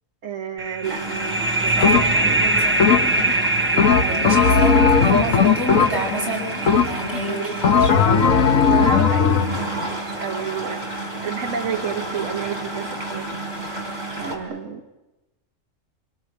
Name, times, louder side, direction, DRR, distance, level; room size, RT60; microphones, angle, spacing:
voice 1, 0.2-2.5 3.7-4.4 8.6-10.9 11.2-13.3 14.1-14.9, right 7 dB, 80° right, 4 dB, 1.7 m, -31 dB
sound 1, 0.6-9.9, right 2 dB, 10° right, 0.7 m, -24 dB
sound 2, 0.8-14.4, right 2 dB, 35° right, 5.3 m, -31 dB
voice 2, 1.7-3.1 4.2-8.1, equal, 60° right, -2 dB, 8.0 m, -29 dB
sound 3, 1.8-2.3 2.8-3.3 3.8-6.2 6.7-7.2 7.6-9.6, left 6 dB, 85° left, 1.6 m, -17 dB
29.0 x 21.5 x 9.0 m, 1.1 s
omnidirectional pair, 1.3 m